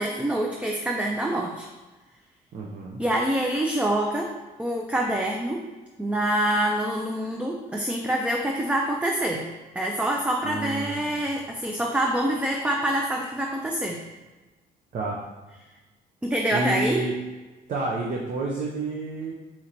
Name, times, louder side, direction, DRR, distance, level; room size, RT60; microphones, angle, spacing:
voice 1, 0.0-1.7 3.0-4.3 4.6-5.6 6.0-9.5 9.8-14.0 16.2-17.0, right 1 dB, 5° right, 0 dB, 0.4 m, -26 dB
voice 2, 2.5-3.0 10.4-11.1 14.9-15.2 16.5-17.1 17.7-19.3, right 2 dB, 50° right, -2 dB, 0.7 m, -29 dB
4.4 x 2.9 x 3.8 m, 1.2 s
cardioid pair, 110°, 17 cm